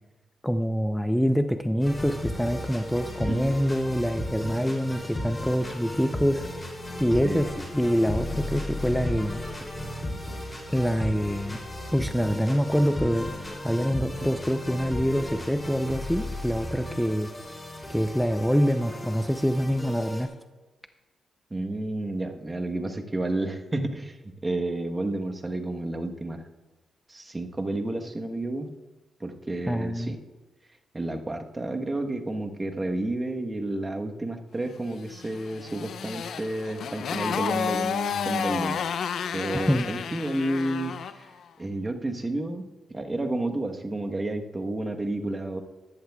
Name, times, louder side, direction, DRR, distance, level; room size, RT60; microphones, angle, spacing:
voice 1, 0.4-6.4 7.0-9.4 10.7-11.6 11.9-13.3 13.6-17.3 17.9-20.3 29.7-30.1 39.7-39.9, equal, ahead, 8 dB, 0.6 m, -25 dB
sound 1, 1.8-20.3, left 1 dB, 20° left, 3.0 m, -35 dB
voice 2, 21.5-26.5 27.1-28.7 29.2-30.2 30.9-38.8 39.3-41.3 41.6-45.6, right 2 dB, 25° right, 5 dB, 1.2 m, -31 dB
Motorcycle, 35.2-41.2, left 7 dB, 75° left, 0.5 m, -31 dB
14.0 x 11.0 x 2.3 m, 1.2 s
supercardioid pair, 55°, 0 cm